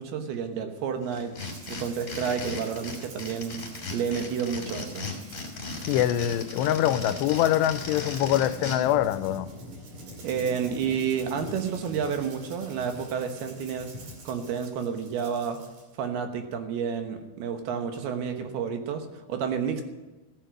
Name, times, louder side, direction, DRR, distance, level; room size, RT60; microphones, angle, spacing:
voice 1, 0.0-1.4 1.7-3.6 3.9-5.1 10.2-13.9 14.2-15.6 16.0-19.8, right 7 dB, 75° right, 3.1 m, -30 dB
sound 1, 1.1-8.8, left 3 dB, 25° left, 2.3 m, -37 dB
Rattle (instrument), 1.4-15.9, right 3 dB, 50° right, 3.6 m, -50 dB
voice 2, 5.9-9.5, left 12 dB, 85° left, 2.8 m, -24 dB
sound 2, 7.5-14.5, equal, 30° right, 5.6 m, -44 dB
15.0 x 10.0 x 7.7 m
omnidirectional pair, 4.8 m